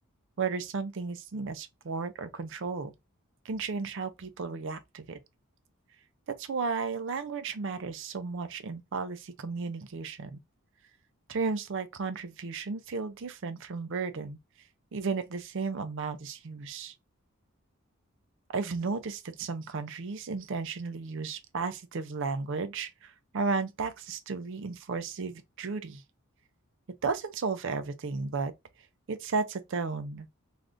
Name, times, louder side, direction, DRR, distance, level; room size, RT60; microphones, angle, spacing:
voice 1, 0.4-2.9 3.5-5.2 6.3-10.4 11.3-14.4 14.9-16.9 18.5-26.0 27.0-28.5 29.1-30.3, right 4 dB, 60° right, 0.5 m, -34 dB
3.4 x 2.5 x 2.5 m
head